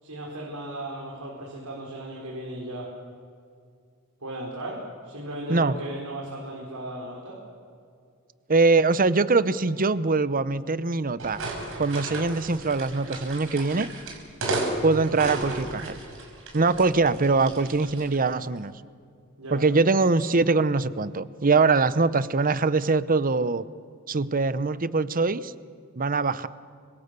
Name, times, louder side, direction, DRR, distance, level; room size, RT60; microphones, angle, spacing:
voice 1, 0.0-2.9 4.2-7.4 19.4-19.6, right 1 dB, 80° right, -3 dB, 4.9 m, -36 dB
voice 2, 8.5-11.4 11.8-13.9 14.8-15.9 16.5-18.7 19.5-23.6 24.1-25.5 26.0-26.5, right 3 dB, 40° right, 16 dB, 0.8 m, -23 dB
sound 1, 11.2-18.2, right 2 dB, 65° right, 5.8 m, -34 dB
30.0 x 25.0 x 6.9 m, 2.3 s
head